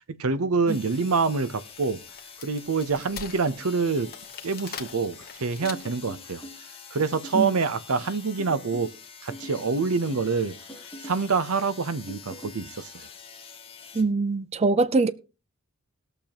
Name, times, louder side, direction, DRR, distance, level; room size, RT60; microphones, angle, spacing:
voice 1, 0.2-2.0 2.4-4.1 4.4-6.4 6.9-8.9 9.2-10.6 11.0-13.1, right 4 dB, 75° right, 0.7 m, -26 dB
sound 1, 0.7-14.0, left 6 dB, 25° left, 1.7 m, -46 dB
Wood, 1.4-6.2, left 7 dB, 45° left, 1.0 m, -42 dB
sound 2, 5.6-6.6 7.0-7.6 8.4-8.9 9.3-10.3 10.7-11.3 12.1-12.6, equal, 10° left, 1.2 m, -43 dB
voice 2, 13.9-15.1, right 3 dB, 30° right, 0.5 m, -23 dB
20.0 x 6.9 x 2.9 m
head